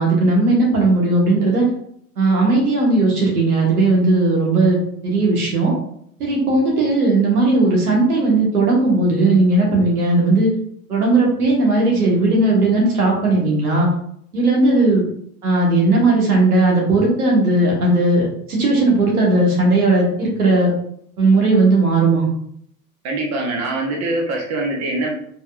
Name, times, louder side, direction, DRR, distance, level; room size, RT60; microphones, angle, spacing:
voice 1, 0.0-1.6 2.2-4.8 5.0-5.7 6.2-10.5 10.9-13.9 14.3-15.0 15.4-18.2 18.5-20.7 21.2-22.2, right 2 dB, 80° right, -2 dB, 1.5 m, -16 dB
voice 2, 23.0-25.1, right 2 dB, 35° right, 0 dB, 1.2 m, -23 dB
4.2 x 3.7 x 2.4 m, 0.67 s
figure-of-eight pair, 80°, 44 cm